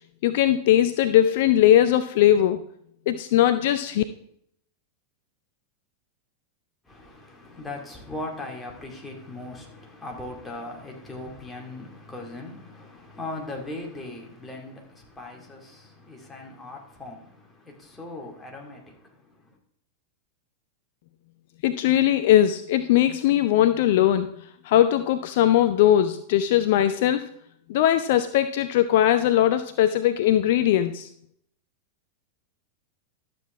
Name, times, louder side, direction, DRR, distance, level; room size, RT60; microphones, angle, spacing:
voice 1, 0.2-2.6 3.1-4.0 21.6-27.3 27.7-31.1, left 12 dB, 50° left, 0.5 m, -20 dB
voice 2, 6.8-19.6, left 2 dB, 10° left, 2.3 m, -39 dB
12.0 x 7.6 x 3.6 m
figure-of-eight pair, 90°, 0 cm